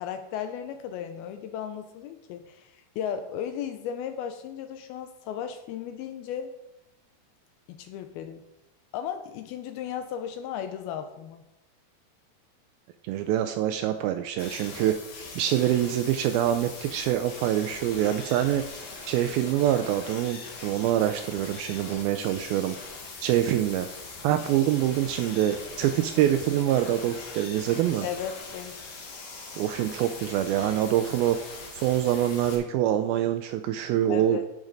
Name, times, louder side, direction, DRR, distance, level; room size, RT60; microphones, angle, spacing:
voice 1, 0.0-6.5 7.7-8.4 8.9-11.4 28.0-28.8 34.1-34.5, left 9 dB, 80° left, 8 dB, 2.3 m, -35 dB
voice 2, 13.0-14.9 15.4-18.6 19.1-22.9 23.2-23.9 24.2-28.1 29.5-31.4 31.7-34.4, right 11 dB, 85° right, 9 dB, 2.1 m, -25 dB
sound 1, 14.4-32.6, left 4 dB, 55° left, 2.7 m, -41 dB
12.0 x 6.4 x 3.9 m, 0.90 s
omnidirectional pair, 4.7 m